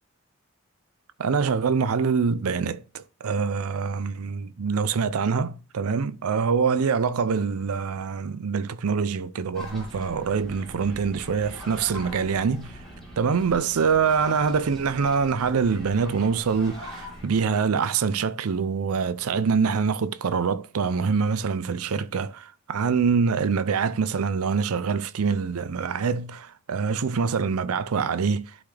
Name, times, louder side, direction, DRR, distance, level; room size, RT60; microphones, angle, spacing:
voice 1, 1.2-12.7 13.2-28.6, right 5 dB, 90° right, 0.5 m, -25 dB
sound 1, 9.5-17.4, left 1 dB, ahead, 3.0 m, -42 dB
11.5 x 4.0 x 3.3 m
head